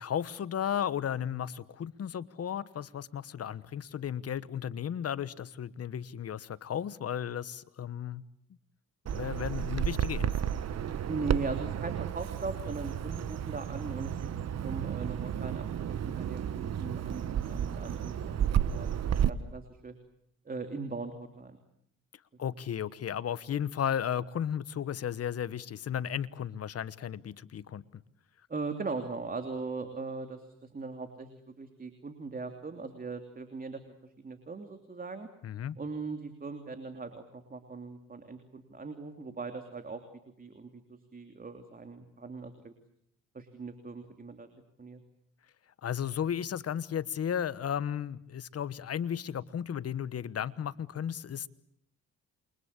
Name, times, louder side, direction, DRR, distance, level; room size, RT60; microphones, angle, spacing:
voice 1, 0.0-8.2 9.1-10.3 22.4-28.0 35.4-35.8 45.8-51.5, left 9 dB, 50° left, 17 dB, 1.2 m, -34 dB
Bird vocalization bird call bird song, 9.1-19.3, right 9 dB, 55° right, 1.3 m, -32 dB
voice 2, 11.1-14.1 14.6-19.9 20.4-21.6 28.5-35.3 35.8-40.0 40.4-42.7 43.3-44.5 44.8-45.0, right 4 dB, 30° right, 7 dB, 3.0 m, -40 dB
28.5 x 24.0 x 8.3 m, 0.71 s
cardioid pair, 90°, 30 cm